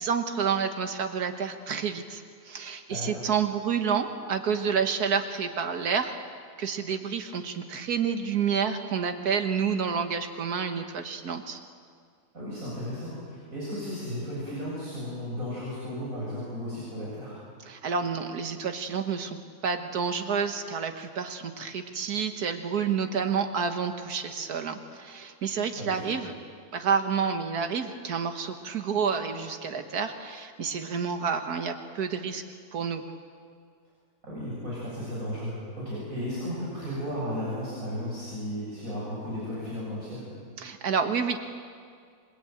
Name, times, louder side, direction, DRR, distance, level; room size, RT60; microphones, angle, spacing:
voice 1, 0.0-6.2 6.6-11.6 17.7-19.4 19.6-26.3 26.7-32.4 32.7-33.0 40.6-41.4, right 6 dB, 80° right, 7 dB, 1.8 m, -29 dB
voice 2, 2.9-3.3 12.3-17.3 25.8-26.1 34.2-40.3, equal, 60° right, -7 dB, 7.5 m, -34 dB
27.5 x 21.0 x 9.0 m, 2.1 s
omnidirectional pair, 1.6 m